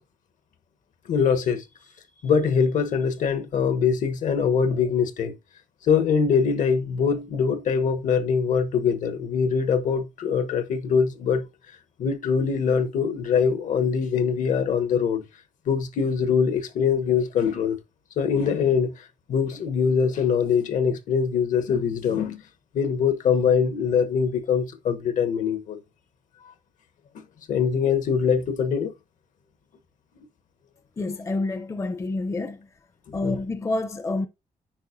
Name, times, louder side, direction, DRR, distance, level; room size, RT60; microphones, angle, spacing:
voice 1, 1.1-1.6 2.2-5.3 5.9-11.4 12.0-15.2 15.7-17.8 18.2-18.9 19.3-22.4 22.7-25.8 27.5-28.9 33.1-33.4, left 6 dB, 70° left, 1.0 m, -23 dB
voice 2, 31.0-32.7 33.1-34.3, left 2 dB, 20° left, 0.5 m, -28 dB
8.8 x 5.0 x 2.6 m
wide cardioid pair, 160°, 14 cm